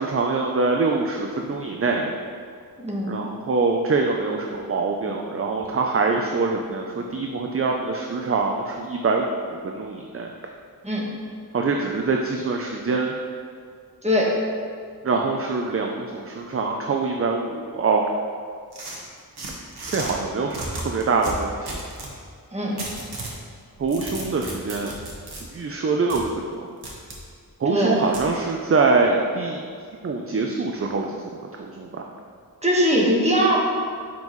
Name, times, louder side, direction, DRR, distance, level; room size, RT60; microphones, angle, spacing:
voice 1, 0.0-2.2 3.1-9.3 9.6-10.3 11.5-13.1 15.0-18.0 19.9-21.7 23.8-24.9 25.5-26.6 27.6-29.6 30.0-31.2 31.8-32.1, right 4 dB, 35° right, 2 dB, 0.5 m, -24 dB
voice 2, 2.8-3.2 10.8-11.1 14.0-14.3 22.5-22.8 27.6-28.0 32.6-33.6, equal, 15° right, -4 dB, 1.3 m, -21 dB
sound 1, 18.7-20.1 20.5-22.1 22.8-23.4 23.8-25.4 26.1-26.2 26.8-27.2 28.1-28.3, right 2 dB, 85° right, 1.2 m, -34 dB
7.5 x 5.3 x 3.1 m, 2.1 s
wide cardioid pair, 65°, 38 cm